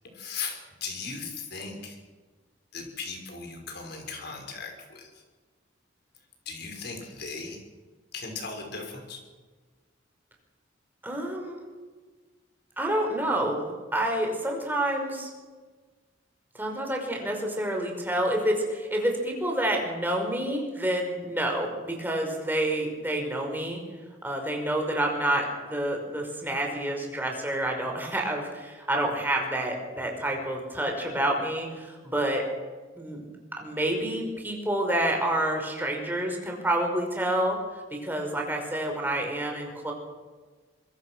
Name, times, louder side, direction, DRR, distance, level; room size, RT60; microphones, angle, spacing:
voice 1, 0.1-2.0 2.7-5.1 6.5-7.6 8.1-9.2, left 4 dB, 55° left, 4 dB, 5.7 m, -37 dB
voice 2, 11.0-11.6 12.8-15.3 16.5-23.8 24.2-32.4 33.0-33.3 33.6-37.6 37.9-39.9, right 1 dB, 10° right, 1 dB, 5.5 m, -28 dB
25.0 x 22.5 x 6.3 m, 1.4 s
head